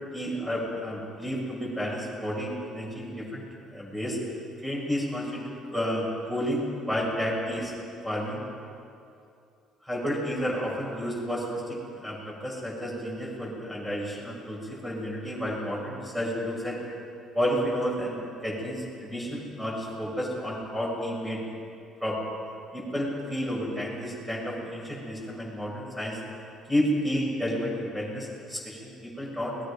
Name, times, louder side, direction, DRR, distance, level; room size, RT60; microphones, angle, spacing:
voice 1, 0.1-3.4 3.7-4.2 4.6-7.7 8.0-8.4 9.8-16.8 17.3-21.4 22.0-22.2 22.7-26.2 26.7-29.7, equal, 5° right, -3 dB, 7.5 m, -31 dB
29.5 x 21.0 x 5.3 m, 2.5 s
cardioid pair, 140°, 0 cm